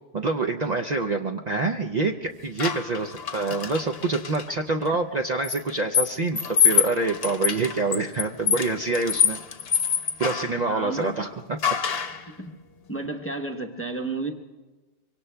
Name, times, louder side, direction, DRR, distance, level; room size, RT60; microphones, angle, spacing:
voice 1, 0.1-9.4 10.2-11.3 11.7-11.8, right 3 dB, 50° right, 3 dB, 0.6 m, -26 dB
sound 1, 2.6-4.5 5.4-10.6 11.6-12.2, left 8 dB, 65° left, 1.0 m, -25 dB
voice 2, 10.7-11.1 12.3-12.5 12.9-14.3, right 3 dB, 15° left, 3 dB, 0.8 m, -32 dB
24.5 x 24.0 x 2.2 m, 1.2 s
omnidirectional pair, 1.1 m